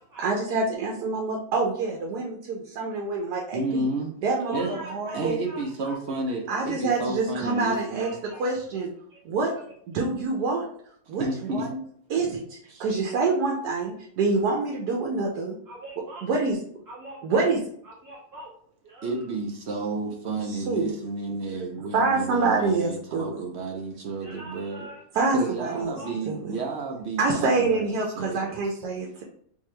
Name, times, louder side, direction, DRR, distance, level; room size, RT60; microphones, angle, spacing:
voice 1, 0.2-3.9 4.2-4.5 4.9-5.4 6.5-8.1 8.4-8.9 9.2-9.5 9.9-10.6 11.1-11.3 11.5-11.8 12.1-15.6 16.2-16.5 17.2-17.6 20.5-20.9 21.8-23.4 25.1-25.9 26.3-26.4 27.2-29.2, right 3 dB, 90° right, 1.2 m, -26 dB
voice 2, 3.5-4.1 4.5-4.8 5.1-8.1 11.1-11.7 12.7-12.8 19.0-24.9 25.3-27.8 28.2-28.8, right 3 dB, 60° right, 0.7 m, -31 dB
voice 3, 4.4-6.0 6.5-6.6 7.4-8.4 9.1-9.2 15.7-16.3 16.9-17.4 17.8-18.5 18.8-19.3 24.2-25.0 25.4-25.5 25.9-26.2, right 1 dB, 30° right, 0.4 m, -43 dB
3.7 x 2.7 x 3.2 m
omnidirectional pair, 1.7 m